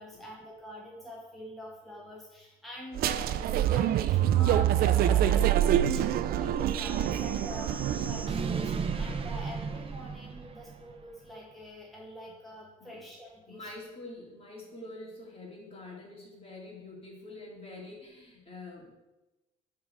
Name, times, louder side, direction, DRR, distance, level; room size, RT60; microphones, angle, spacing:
voice 1, 0.0-13.7, equal, ahead, -4 dB, 1.3 m, -44 dB
sound 1, 3.0-8.5, right 11 dB, 65° right, 0.4 m, -26 dB
sound 2, 6.7-11.0, right 5 dB, 35° right, 0.7 m, -36 dB
voice 2, 13.5-18.9, left 2 dB, 35° left, -2 dB, 2.4 m, -46 dB
8.4 x 3.9 x 4.7 m, 1.0 s
cardioid pair, 110°, 17 cm